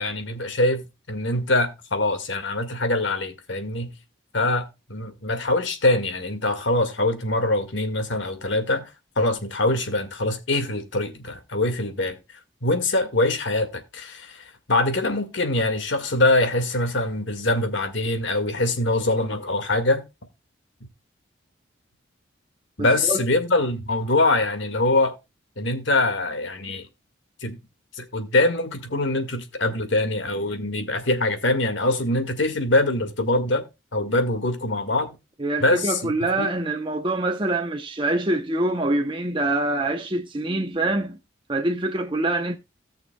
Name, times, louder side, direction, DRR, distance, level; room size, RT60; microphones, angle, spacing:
voice 1, 0.0-3.9 4.3-12.2 12.6-20.0 22.8-25.1 25.6-26.9 27.4-27.6 27.9-33.6 33.9-35.1 35.6-36.5, left 2 dB, 70° left, 1.9 m, -23 dB
voice 2, 22.8-23.2 35.4-41.2 41.5-42.6, right 2 dB, 25° right, 0.8 m, -25 dB
17.5 x 6.4 x 2.3 m
head